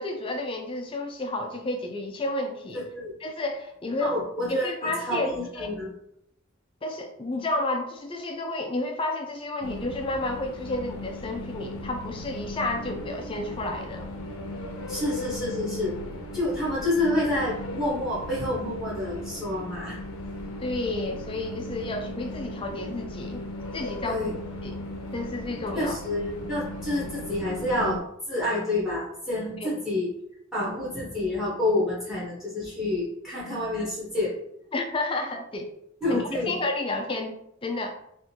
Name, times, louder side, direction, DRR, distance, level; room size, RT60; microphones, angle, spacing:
voice 1, 0.0-2.8 3.2-4.2 4.5-5.7 6.8-14.1 20.6-23.4 23.7-24.3 24.6-24.8 25.1-26.0 29.6-29.7 34.7-35.7 36.1-38.0, left 2 dB, 25° left, 4 dB, 0.4 m, -31 dB
voice 2, 2.7-3.1 4.0-4.7 5.0-5.9 14.9-16.0 16.3-20.0 24.0-24.3 25.7-28.0 28.3-30.1 30.5-34.3 36.0-36.6, left 1 dB, ahead, -6 dB, 1.1 m, -28 dB
sound 1, 9.6-28.0, left 1 dB, 90° left, 0.6 m, -37 dB
3.6 x 2.5 x 2.8 m, 0.74 s
head